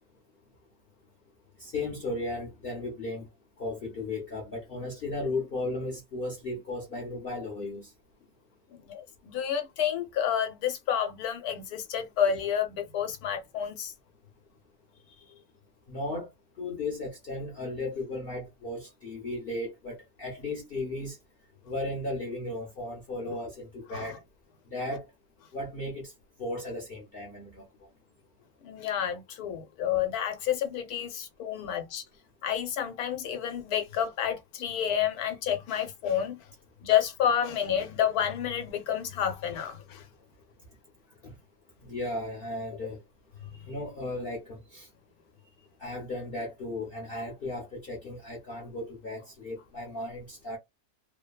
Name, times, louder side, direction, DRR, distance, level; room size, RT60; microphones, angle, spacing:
voice 1, 1.6-3.3 3.6-7.9 15.9-16.3 16.6-21.2 21.6-24.2 24.7-25.0 25.5-26.1 26.4-27.7 41.2-41.4 41.8-43.0 43.6-44.9 45.8-50.6, left 2 dB, 50° left, 0.7 m, -35 dB
voice 2, 8.8-13.9 23.9-24.1 28.6-32.0 32.4-36.5 36.8-40.1, left 9 dB, 75° left, 1.1 m, -29 dB
3.0 x 2.1 x 2.2 m
omnidirectional pair, 1.7 m